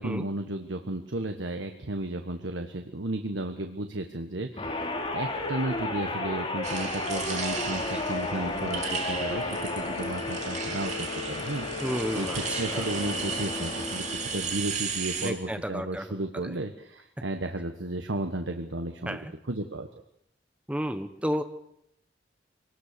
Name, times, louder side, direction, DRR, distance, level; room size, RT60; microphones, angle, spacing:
voice 1, 0.0-19.2 19.5-19.9, right 2 dB, 90° right, 6 dB, 1.4 m, -34 dB
sound 1, 4.6-14.9, left 2 dB, 30° left, 3.6 m, -33 dB
sound 2, 6.6-15.3, right 6 dB, 40° right, 2.9 m, -35 dB
voice 2, 7.7-8.0 11.8-12.9 15.2-16.1 16.4-16.5 19.0-19.3 20.7-21.4, equal, 5° right, 8 dB, 1.3 m, -32 dB
24.0 x 19.0 x 6.8 m, 0.76 s
head